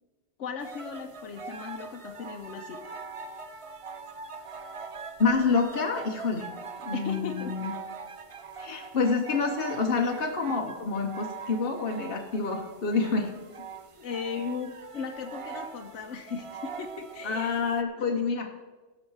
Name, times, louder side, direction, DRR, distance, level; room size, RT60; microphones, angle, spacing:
voice 1, 0.4-2.9 6.6-7.5 14.0-17.6, left 5 dB, 85° left, 3 dB, 1.1 m, -37 dB
sound 1, 0.6-17.8, right 5 dB, 40° right, 0.5 m, -42 dB
voice 2, 5.2-6.5 6.8-7.7 8.6-13.3 17.2-18.5, left 4 dB, 55° left, 1 dB, 1.1 m, -27 dB
17.5 x 6.5 x 4.6 m, 1.3 s
omnidirectional pair, 1.2 m